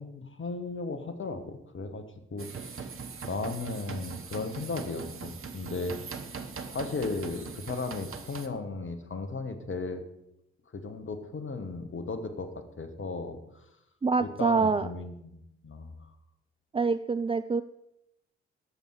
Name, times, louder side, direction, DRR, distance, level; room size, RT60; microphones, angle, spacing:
voice 1, 0.0-2.0 2.3-2.9 3.2-6.0 6.7-10.0 10.7-13.7 14.2-15.9, left 3 dB, 40° left, 8 dB, 2.1 m, -36 dB
sound 1, 2.4-8.5, right 5 dB, 40° right, 1.4 m, -41 dB
voice 2, 14.0-14.9 16.7-17.6, right 4 dB, 15° right, 11 dB, 0.5 m, -26 dB
20.0 x 7.9 x 5.0 m, 0.81 s
figure-of-eight pair, 40°, 33 cm